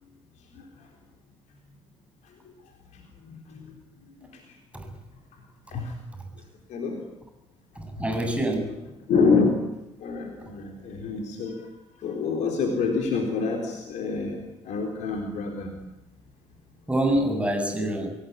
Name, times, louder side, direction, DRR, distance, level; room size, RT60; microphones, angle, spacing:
voice 1, 7.8-8.7 16.9-18.1, right 1 dB, 10° right, 4 dB, 7.9 m, -26 dB
voice 2, 9.1-9.6 10.0-11.6 12.0-14.4 14.7-15.7, left 4 dB, 55° left, 2 dB, 3.8 m, -26 dB
27.5 x 17.0 x 9.9 m, 0.91 s
figure-of-eight pair, 50°, 15 cm